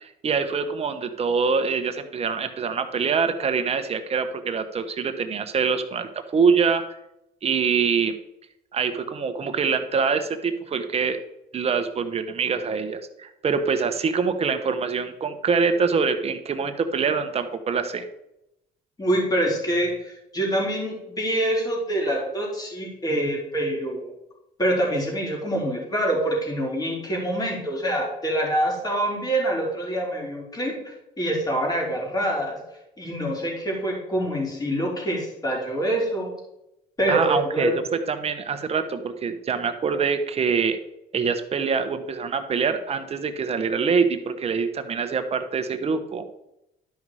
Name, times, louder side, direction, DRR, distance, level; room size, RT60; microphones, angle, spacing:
voice 1, 0.0-6.8 7.4-8.1 8.7-11.2 11.5-18.0 37.1-37.7 38.1-40.8 41.1-46.2, right 5 dB, 35° right, 8 dB, 1.1 m, -24 dB
voice 2, 19.0-24.1 24.6-32.6 33.0-36.3 37.0-37.7, right 1 dB, 20° left, -2 dB, 3.9 m, -25 dB
12.0 x 5.5 x 4.9 m, 0.85 s
cardioid pair, 110°, 17 cm